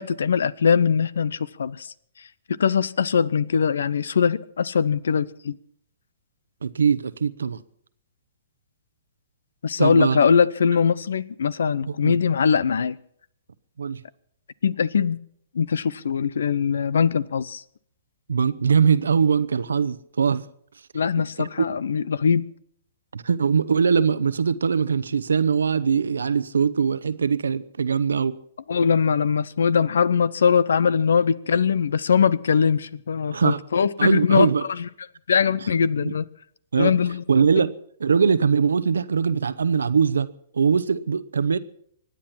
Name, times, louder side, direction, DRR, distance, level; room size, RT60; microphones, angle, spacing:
voice 1, 0.0-1.9 2.6-5.6 9.6-13.0 14.6-15.2 15.5-17.6 20.9-22.4 28.7-34.5 34.8-34.9 35.3-36.2 36.8-37.2 37.6-37.7, left 6 dB, 70° left, 0.7 m, -21 dB
voice 2, 6.6-7.6 9.8-10.2 11.9-12.2 13.8-14.0 18.3-20.5 21.2-21.7 23.1-28.4 33.3-33.6 34.0-34.6 36.0-36.1 36.7-36.9 37.3-37.7 38.0-41.6, right 6 dB, 75° right, 0.8 m, -22 dB
25.0 x 9.9 x 5.8 m
figure-of-eight pair, 120°, 0 cm